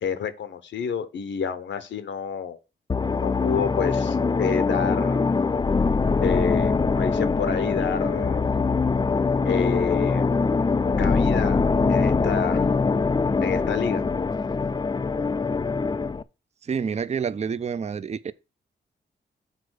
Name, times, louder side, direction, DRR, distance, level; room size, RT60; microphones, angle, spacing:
voice 1, 0.0-2.6 3.2-5.3 6.2-8.5 9.4-10.3 11.0-11.6 11.9-12.8 13.4-14.1, left 7 dB, 80° left, 0.9 m, -29 dB
sound 1, 2.9-16.2, left 4 dB, 25° left, 0.4 m, -23 dB
voice 2, 16.6-18.3, right 6 dB, 35° right, 0.5 m, -28 dB
6.7 x 4.4 x 6.3 m
cardioid pair, 85°, 19 cm